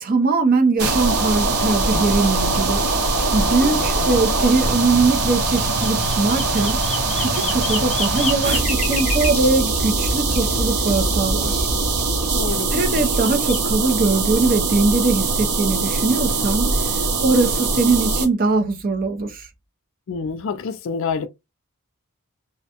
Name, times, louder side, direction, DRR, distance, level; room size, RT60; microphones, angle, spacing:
voice 1, 0.0-2.8 3.3-6.8 7.2-11.7 12.7-17.0 17.2-19.5, right 3 dB, 40° right, 0.5 m, -21 dB
sound 1, 0.8-18.3, right 3 dB, 85° right, 0.7 m, -22 dB
sound 2, 1.1-1.2 1.7-4.0 5.1-11.1 12.0-13.6, left 3 dB, 30° left, 0.7 m, -32 dB
voice 2, 3.6-4.2 12.3-12.7 20.1-21.3, left 5 dB, 60° left, 0.3 m, -28 dB
2.4 x 2.1 x 2.8 m
head